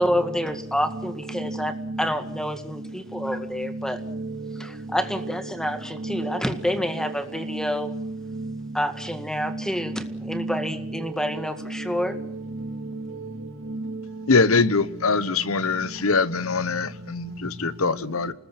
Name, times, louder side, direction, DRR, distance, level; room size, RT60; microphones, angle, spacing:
voice 1, 0.0-4.0 4.6-7.9 8.7-12.2, equal, 5° left, 9 dB, 1.9 m, -28 dB
voice 2, 0.9-2.1 3.2-4.6 5.1-5.3 5.9-6.4 6.7-7.1 7.4-8.5 9.4-9.6 10.2-13.3 13.6-14.0 17.8-18.0, right 2 dB, 65° right, 7 dB, 3.2 m, -34 dB
voice 3, 14.3-18.3, left 4 dB, 80° left, 17 dB, 1.2 m, -23 dB
28.5 x 20.0 x 5.9 m, 0.78 s
head